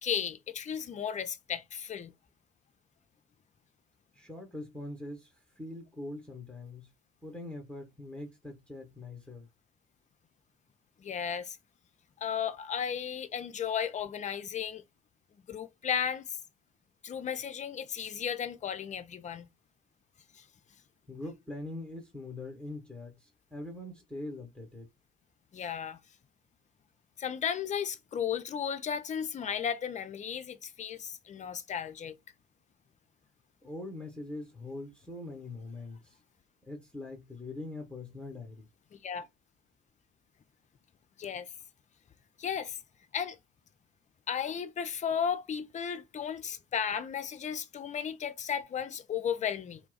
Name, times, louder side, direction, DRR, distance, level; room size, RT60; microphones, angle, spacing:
voice 1, 0.0-2.1 11.0-11.6 12.2-14.8 15.5-16.4 17.0-19.5 20.3-20.4 25.5-26.0 27.2-32.1 38.9-39.3 41.2-41.5 42.4-42.8 43.1-43.4 44.3-49.8, left 8 dB, 20° left, 0.4 m, -34 dB
voice 2, 4.1-6.9 7.2-9.5 21.1-24.9 33.6-36.2 36.6-38.7, left 2 dB, 5° left, 0.9 m, -43 dB
2.3 x 2.1 x 3.8 m
figure-of-eight pair, 45°, 37 cm